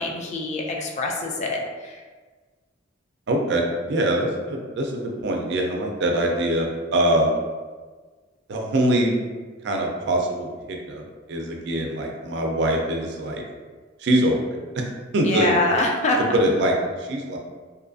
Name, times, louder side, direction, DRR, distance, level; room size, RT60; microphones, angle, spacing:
voice 1, 0.0-2.0 15.2-16.2, left 2 dB, 35° left, 0 dB, 0.3 m, -24 dB
voice 2, 3.3-6.7 6.9-7.4 8.5-9.2 9.6-11.0 11.3-13.4 14.0-14.4 14.7-15.6 16.3-17.4, right 1 dB, 65° right, 1 dB, 0.4 m, -23 dB
2.6 x 2.3 x 2.5 m, 1.4 s
head